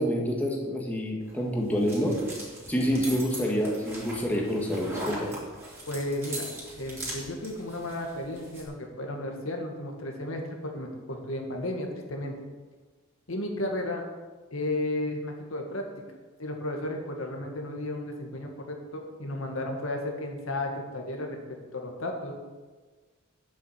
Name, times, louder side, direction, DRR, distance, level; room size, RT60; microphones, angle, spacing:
voice 1, 0.0-2.2 2.7-5.3, equal, 5° left, -1 dB, 1.6 m, -27 dB
sound 1, 1.2-8.6, right 1 dB, 10° right, 3.4 m, -40 dB
voice 2, 5.9-6.5 6.8-12.3 13.3-14.0 14.5-15.8 16.4-21.4 21.7-22.3, left 1 dB, 70° left, 2 dB, 1.8 m, -33 dB
9.2 x 7.5 x 7.4 m, 1.3 s
head